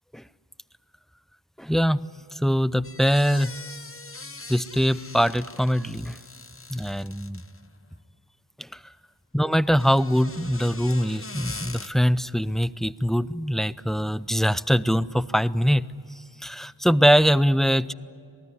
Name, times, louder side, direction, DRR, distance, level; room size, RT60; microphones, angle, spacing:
voice 1, 1.6-2.1 2.3-3.6 4.5-6.2 6.7-7.4 8.6-8.8 9.3-15.9 16.2-17.9, equal, ahead, 16 dB, 0.5 m, -23 dB
sound 1, 2.8-7.7 9.6-11.9, left 3 dB, 30° left, 0.9 m, -42 dB
27.5 x 19.0 x 9.8 m, 2.4 s
wide cardioid pair, 45°, 42 cm